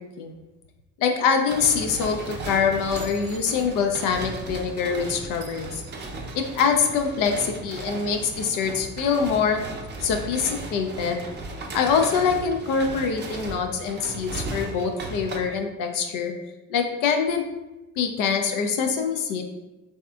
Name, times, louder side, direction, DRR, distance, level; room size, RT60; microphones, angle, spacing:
voice 1, 1.0-5.8 6.3-9.6 10.0-11.2 11.7-16.3 16.7-17.4 18.0-19.4, left 6 dB, 55° left, 4 dB, 0.5 m, -24 dB
sound 1, 1.5-15.4, right 2 dB, 30° right, 0.6 m, -36 dB
3.1 x 2.8 x 2.3 m, 1.1 s
hypercardioid pair, 60°, 38 cm